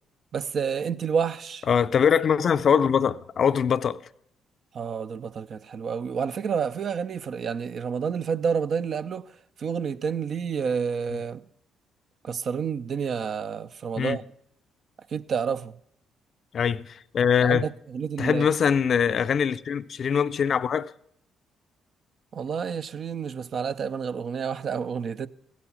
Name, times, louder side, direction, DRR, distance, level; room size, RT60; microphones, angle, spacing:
voice 1, 0.3-1.7 4.7-9.3 9.6-11.4 12.2-14.2 15.1-15.7 17.4-18.5 22.3-25.3, right 6 dB, 60° right, 0.6 m, -29 dB
voice 2, 1.7-4.0 14.0-14.2 16.5-17.7 18.2-20.9, left 7 dB, 55° left, 0.5 m, -22 dB
15.5 x 8.4 x 5.8 m
supercardioid pair, 55°, 0 cm